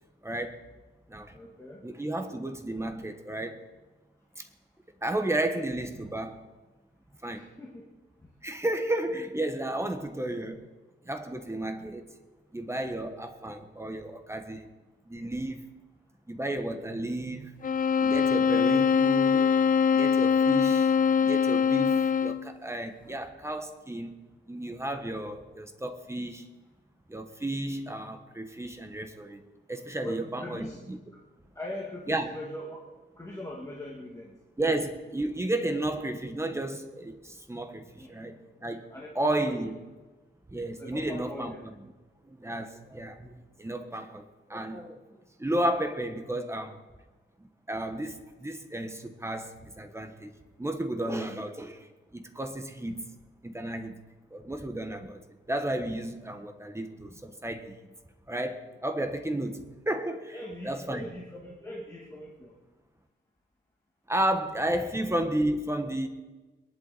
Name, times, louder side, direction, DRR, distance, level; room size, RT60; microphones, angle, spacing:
voice 1, 0.2-0.6 1.1-1.3 1.8-3.6 4.4-4.5 5.0-6.4 7.2-7.5 8.4-10.7 11.0-12.1 12.5-14.7 15.1-15.7 16.3-17.6 18.0-19.5 19.9-20.9 21.2-24.2 24.5-26.5 27.1-29.4 29.7-31.0 32.1-32.3 34.6-38.9 39.1-39.8 40.5-41.7 42.2-45.0 45.4-46.8 47.7-50.3 50.6-53.1 53.4-54.0 54.3-55.2 55.5-57.7 58.3-60.4 60.6-61.0 64.1-66.1, right 1 dB, 10° right, 6 dB, 1.4 m, -33 dB
voice 2, 1.3-1.9 7.2-7.8 8.2-8.3 23.0-23.2 30.0-30.8 31.1-31.2 31.5-34.4 38.0-38.2 38.9-39.1 39.4-39.6 40.8-41.6 60.3-62.6, left 1 dB, 15° left, -3 dB, 2.1 m, -41 dB
sound 1, 17.6-22.5, left 6 dB, 40° left, 0.5 m, -23 dB
23.0 x 11.5 x 4.2 m, 1.2 s
wide cardioid pair, 120°, 21 cm